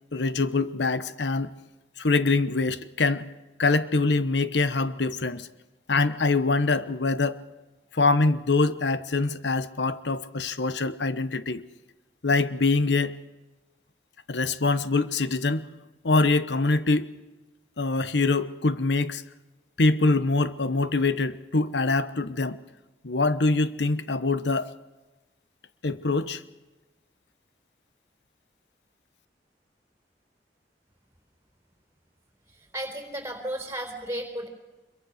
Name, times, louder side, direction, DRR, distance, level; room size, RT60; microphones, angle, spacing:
voice 1, 0.1-1.5 2.0-3.3 3.6-5.5 5.9-7.4 7.9-11.6 12.2-13.2 14.3-15.7 16.0-17.2 17.8-19.2 19.8-22.6 23.0-24.7 25.8-26.4, left 3 dB, 90° left, 14 dB, 1.0 m, -24 dB
voice 2, 32.5-34.5, right 1 dB, 15° right, 5 dB, 4.1 m, -34 dB
25.5 x 23.0 x 6.5 m, 1.1 s
head